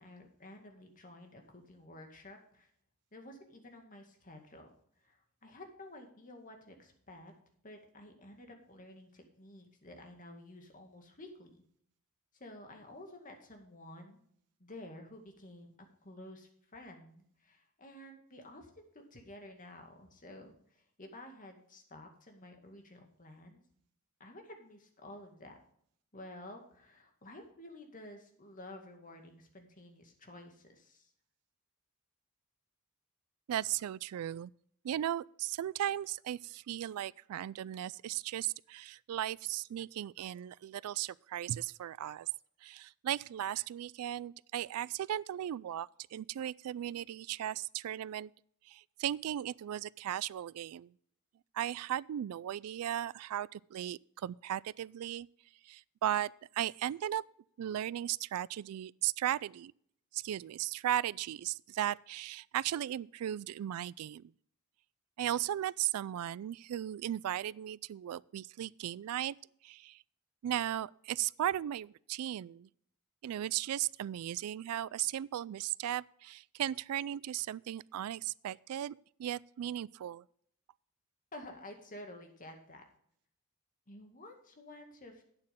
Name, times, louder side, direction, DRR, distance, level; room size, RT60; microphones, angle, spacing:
voice 1, 0.0-2.7 3.1-4.7 5.0-7.3 7.6-11.6 12.3-14.2 14.6-15.7 16.0-23.6 24.2-25.6 26.1-31.1 81.3-82.8 83.9-85.2, left 1 dB, 40° left, 2.1 m, -52 dB
voice 2, 33.5-34.5 34.8-42.3 42.6-48.3 48.7-50.9 51.5-55.3 55.7-57.2 57.6-59.7 60.1-64.3 65.2-69.3 69.6-70.0 70.4-72.7 73.2-78.9 79.2-80.2, right 11 dB, 80° right, 0.3 m, -36 dB
11.5 x 8.9 x 3.6 m
head